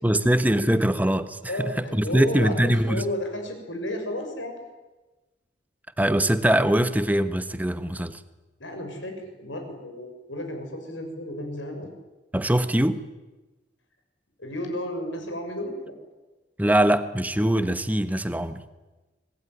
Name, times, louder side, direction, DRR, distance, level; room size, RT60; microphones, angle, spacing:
voice 1, 0.0-3.1 6.0-8.2 12.3-13.0 16.6-18.6, right 1 dB, 10° right, 1.2 m, -22 dB
voice 2, 1.5-4.5 8.6-11.9 14.4-15.9, left 1 dB, 90° left, 6.6 m, -33 dB
26.0 x 20.5 x 9.7 m
head